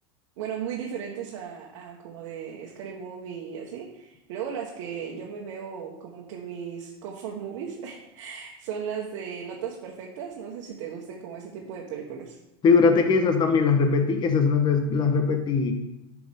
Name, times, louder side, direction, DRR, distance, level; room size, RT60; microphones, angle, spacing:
voice 1, 0.4-12.4, right 7 dB, 70° right, -2 dB, 1.3 m, -36 dB
voice 2, 12.6-15.7, left 5 dB, 30° left, 6 dB, 1.1 m, -21 dB
9.2 x 6.1 x 3.6 m, 0.93 s
supercardioid pair, 130°, 16 cm